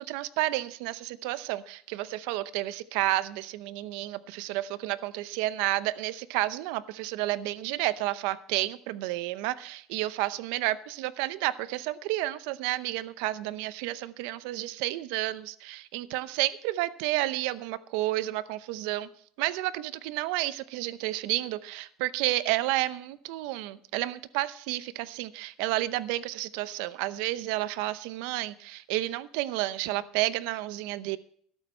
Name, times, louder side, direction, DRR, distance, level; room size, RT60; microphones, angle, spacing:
voice 1, 0.0-19.1 19.4-31.2, right 16 dB, 75° right, 17 dB, 0.7 m, -31 dB
13.0 x 12.0 x 4.4 m, 0.62 s
cardioid pair, 145°, 0 cm